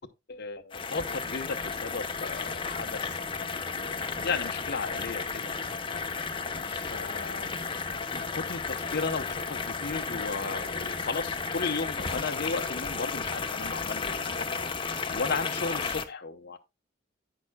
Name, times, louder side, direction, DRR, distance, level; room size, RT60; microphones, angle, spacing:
voice 1, 0.3-3.2 3.7-5.5 6.6-7.7 8.1-16.6, left 4 dB, 55° left, 0.8 m, -35 dB
sound 1, 0.7-16.0, left 4 dB, 25° left, 0.9 m, -33 dB
11.0 x 8.7 x 2.2 m
head